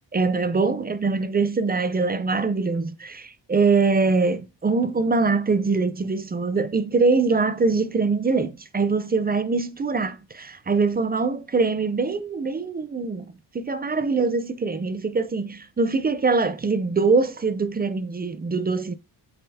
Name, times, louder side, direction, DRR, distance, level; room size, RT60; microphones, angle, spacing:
voice 1, 0.1-18.9, right 4 dB, 20° right, 0.4 m, -23 dB
7.9 x 3.7 x 3.4 m
wide cardioid pair, 130°, 44 cm